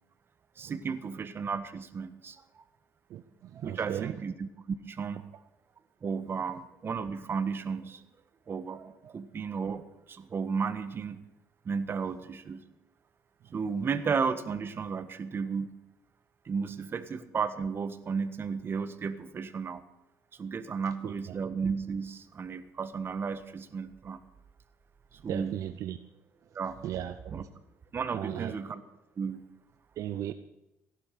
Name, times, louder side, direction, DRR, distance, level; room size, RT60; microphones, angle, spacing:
voice 1, 0.6-2.4 3.5-5.3 6.0-8.0 8.5-11.2 11.6-12.6 13.5-15.7 16.4-19.8 20.4-24.2 25.2-25.6 26.5-26.8 27.3-27.5 27.9-28.8 29.2-29.4, right 5 dB, 40° right, 10 dB, 1.5 m, -34 dB
voice 2, 3.6-4.1 21.0-21.1 25.3-26.0 26.8-27.4 28.1-28.5 30.0-30.3, right 11 dB, 65° right, 10 dB, 0.8 m, -35 dB
16.0 x 11.5 x 6.8 m, 0.89 s
cardioid pair, 85°, 6 cm